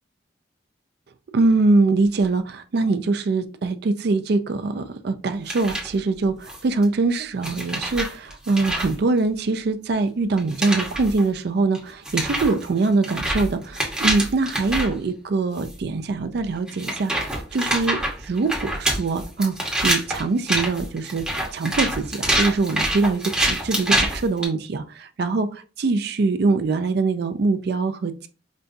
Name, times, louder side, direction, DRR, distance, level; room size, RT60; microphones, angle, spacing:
voice 1, 1.3-19.5 19.8-21.2 21.5-25.5 25.8-28.3, right 3 dB, 60° right, 0.4 m, -23 dB
sound 1, 5.5-5.9 6.5-6.8 7.4-8.9 10.4-11.2 11.7-11.8 12.0-14.9 15.6-15.7 16.7-24.4, right 1 dB, 5° right, 0.9 m, -26 dB
5.1 x 2.3 x 2.6 m
head